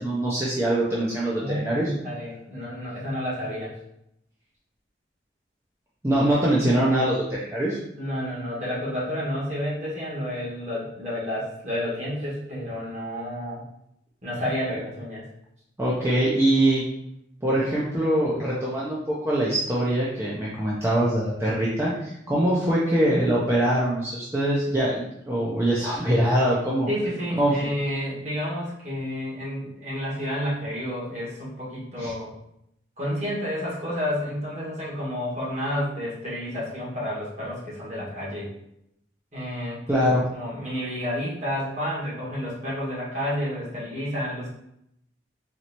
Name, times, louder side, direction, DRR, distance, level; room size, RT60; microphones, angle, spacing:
voice 1, 0.0-1.9 6.0-7.8 15.8-16.8 17.4-26.9 27.4-27.5 32.0-32.1 39.9-40.2, right 1 dB, 15° right, -7 dB, 0.5 m, -23 dB
voice 2, 1.4-3.7 8.0-13.6 14.2-15.2 26.9-32.3 33.0-38.5 39.3-44.5, equal, 40° right, -7 dB, 1.6 m, -30 dB
4.3 x 3.1 x 2.9 m, 0.79 s
head